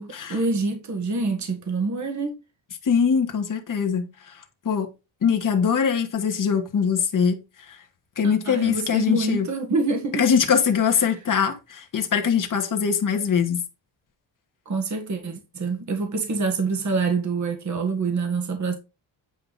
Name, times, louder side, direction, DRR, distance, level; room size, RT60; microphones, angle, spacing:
voice 1, 0.0-2.3 8.2-10.3 14.6-18.7, right 3 dB, 35° right, 1.7 m, -26 dB
voice 2, 2.8-4.4 4.6-4.9 5.2-7.4 7.7-7.8 8.2-9.5 10.1-13.6, left 7 dB, 45° left, 1.6 m, -22 dB
9.1 x 4.9 x 4.1 m
wide cardioid pair, 150°, 46 cm